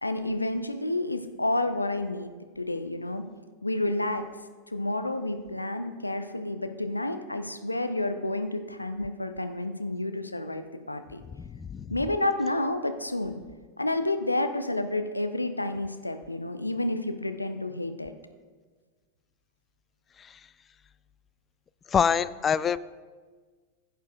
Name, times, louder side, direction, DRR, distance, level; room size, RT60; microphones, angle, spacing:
voice 1, 0.0-2.3 2.6-3.2 3.6-4.2 4.7-11.2 11.9-13.4 13.8-18.1, left 2 dB, 85° left, 8 dB, 0.6 m, -30 dB
voice 2, 11.4-11.9 21.9-22.8, left 7 dB, 20° left, 16 dB, 0.3 m, -25 dB
16.0 x 8.0 x 2.6 m, 1.4 s
figure-of-eight pair, 90°, 0 cm